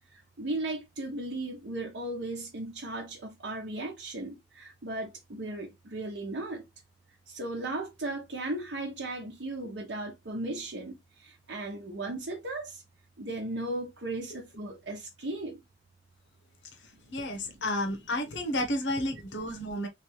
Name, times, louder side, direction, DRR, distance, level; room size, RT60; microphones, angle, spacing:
voice 1, 0.1-6.7 7.3-12.8 13.2-15.6 16.9-17.0 17.3-17.6 19.1-19.2, right 2 dB, 80° right, 0.8 m, -36 dB
voice 2, 17.1-19.9, left 1 dB, 85° left, 0.9 m, -31 dB
3.2 x 3.2 x 3.0 m
head